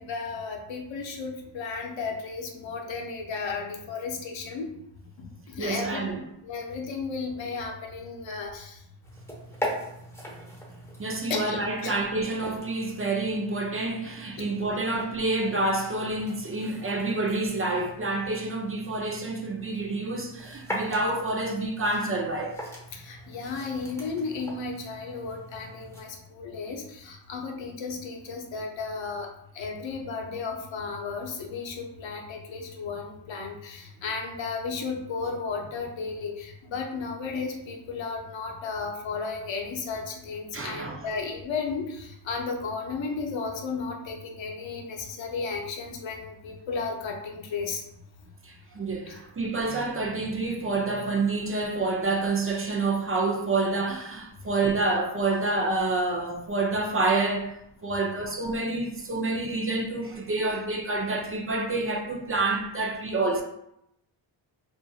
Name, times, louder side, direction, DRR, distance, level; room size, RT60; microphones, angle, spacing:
voice 1, 0.0-4.8 5.2-6.1 6.4-8.8 11.3-11.9 14.4-14.5 22.9-29.3 29.5-47.8 49.1-49.2, left 4 dB, 70° left, 0.7 m, -34 dB
voice 2, 5.6-6.2 11.0-22.6 40.5-41.1 48.4-57.5 57.8-63.4, right 2 dB, 30° right, 0.5 m, -28 dB
sound 1, 9.0-26.0, equal, 5° left, 0.9 m, -41 dB
2.5 x 2.5 x 2.3 m
cardioid pair, 60°, 47 cm